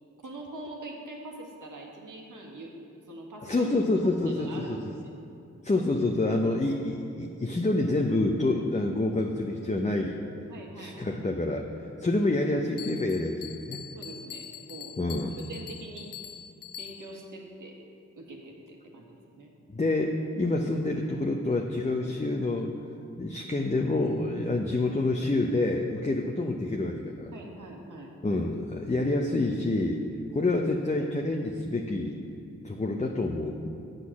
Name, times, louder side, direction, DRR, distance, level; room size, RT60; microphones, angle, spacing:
voice 1, 0.2-2.8 3.1-5.1 10.5-11.2 13.9-15.2 15.5-16.1 16.8-17.8 18.2-19.5 27.3-28.1, right 2 dB, 70° right, 0 dB, 1.7 m, -44 dB
voice 2, 3.4-4.8 5.6-10.2 10.8-11.7 12.0-13.8 15.0-15.4 19.7-22.7 23.2-27.3 28.2-30.0 30.3-32.2 32.6-33.7, left 2 dB, 20° left, 1 dB, 0.8 m, -27 dB
Bell, 12.8-17.3, left 9 dB, 80° left, 0.6 m, -44 dB
7.8 x 6.4 x 7.3 m, 2.6 s
supercardioid pair, 40°, 32 cm